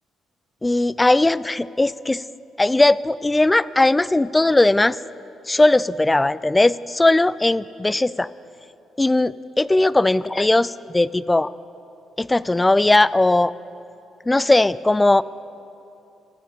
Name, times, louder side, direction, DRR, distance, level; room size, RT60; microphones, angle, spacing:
voice 1, 0.6-2.2 2.6-5.0 5.5-8.3 9.0-11.5 12.2-13.5 14.3-15.2, left 2 dB, 15° left, 19 dB, 0.3 m, -18 dB
17.5 x 15.5 x 5.2 m, 2.8 s
cardioid pair, 90°, 0 cm